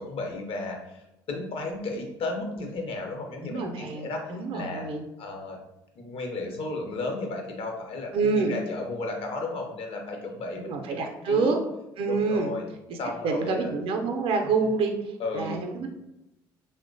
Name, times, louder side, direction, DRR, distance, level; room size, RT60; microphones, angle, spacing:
voice 1, 0.0-4.8 5.2-5.6 6.0-11.6 12.1-12.7 13.0-13.7 15.2-15.6, left 3 dB, 55° left, 2 dB, 0.7 m, -34 dB
voice 2, 3.4-5.0 8.1-8.5 10.6-11.6 12.0-12.5 12.9-13.0 13.2-15.9, right 4 dB, 60° right, 4 dB, 0.5 m, -27 dB
2.9 x 2.1 x 2.5 m, 0.92 s
hypercardioid pair, 55°, 11 cm